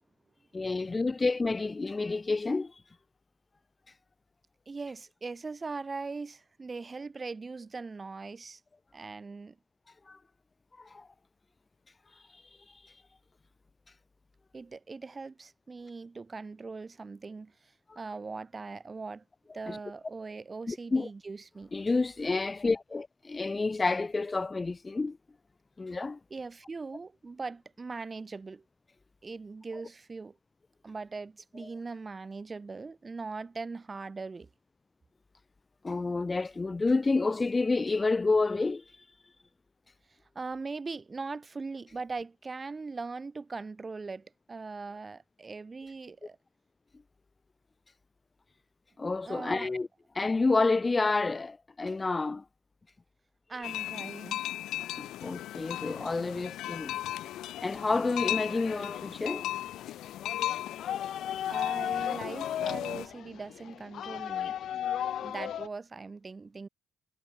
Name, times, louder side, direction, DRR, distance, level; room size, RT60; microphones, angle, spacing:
voice 1, 0.5-2.7 10.1-10.2 10.8-11.1 19.7-19.8 20.7-21.1 21.7-25.2 25.8-26.2 35.8-38.8 49.0-49.9 50.1-52.4 55.0-56.9 57.6-59.5, left 3 dB, 25° left, 0.4 m, -29 dB
voice 2, 4.7-8.6 8.9-9.6 14.5-19.2 19.5-21.8 26.3-28.6 29.2-30.4 30.8-34.5 40.3-46.4 49.3-49.7 53.5-54.5 61.5-64.6 65.2-66.7, right 4 dB, 30° right, 3.0 m, -40 dB
sound 1, 53.6-63.1, left 14 dB, 85° left, 1.5 m, -37 dB
sound 2, 55.4-65.7, left 10 dB, 70° left, 1.7 m, -37 dB
cardioid pair, 90°, 0 cm